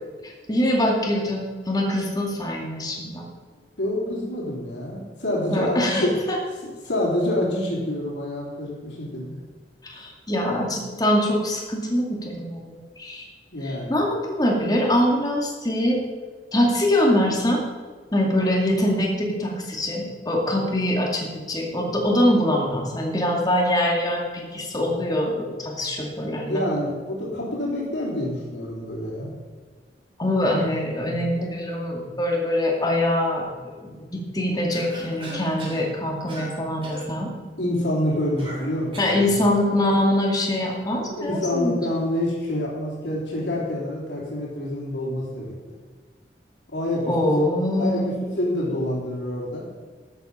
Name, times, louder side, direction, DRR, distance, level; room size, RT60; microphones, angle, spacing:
voice 1, 0.2-3.2 5.5-6.4 9.8-13.2 13.6-16.0 16.5-17.6 18.1-26.6 30.2-37.3 39.0-41.7 47.1-48.1, left 1 dB, 20° left, -1 dB, 2.2 m, -23 dB
voice 2, 3.8-6.2 6.6-9.4 13.5-13.9 26.5-29.3 37.6-39.3 41.1-45.5 46.7-47.5 47.8-49.7, left 1 dB, 85° left, -5 dB, 3.6 m, -27 dB
Cough, 34.7-35.9 36.3-36.6 36.8-37.1 38.4-39.3, equal, 30° right, 3.4 m, -37 dB
13.0 x 8.2 x 5.6 m, 1.5 s
head